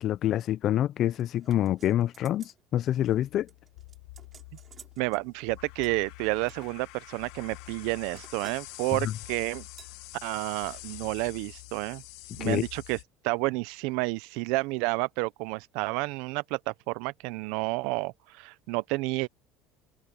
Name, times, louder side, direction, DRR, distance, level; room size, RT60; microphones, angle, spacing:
voice 1, 0.0-3.5 9.0-9.1 12.4-12.6, left 12 dB, 45° left, 0.5 m, -27 dB
sound 1, 1.1-2.6 2.9-3.2 3.5-5.2 5.8-6.8 7.4-8.7 9.0-9.3 9.8-10.0 10.5-10.8 11.1-11.2, right 7 dB, 35° right, 3.2 m, -54 dB
sound 2, 3.0-13.0, left 20 dB, 80° left, 1.1 m, -46 dB
voice 2, 5.0-9.6 10.2-12.0 12.3-13.0 13.2-19.3, right 24 dB, 75° right, 0.6 m, -30 dB
cardioid pair, 135°, 0 cm